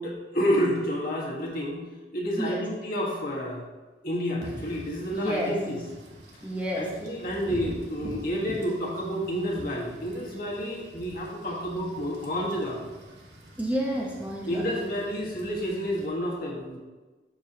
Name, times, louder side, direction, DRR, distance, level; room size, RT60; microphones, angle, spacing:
voice 1, 0.0-1.8 2.1-3.6 4.0-5.8 6.8-12.8 14.5-16.8, equal, 50° left, -3 dB, 1.5 m, -29 dB
Wind / Rain, 4.4-16.1, right 1 dB, 75° right, 1.1 m, -45 dB
voice 2, 5.1-5.5 6.4-6.9 13.6-14.6, equal, 10° right, -3 dB, 0.9 m, -30 dB
12.5 x 4.6 x 2.9 m, 1.3 s
head